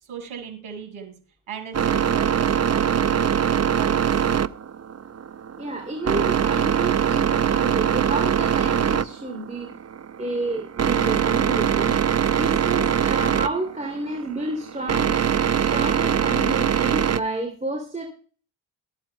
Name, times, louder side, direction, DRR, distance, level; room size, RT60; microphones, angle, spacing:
voice 1, 0.0-1.1 1.5-4.1, right 7 dB, 75° right, 4 dB, 5.9 m, -38 dB
sound 1, 1.7-17.2, right 8 dB, 30° right, 0.6 m, -22 dB
voice 2, 5.6-9.7 10.2-15.2 15.6-18.1, right 2 dB, 15° right, 1 dB, 2.9 m, -30 dB
22.5 x 8.8 x 2.3 m, 0.40 s
cardioid pair, 60°, 49 cm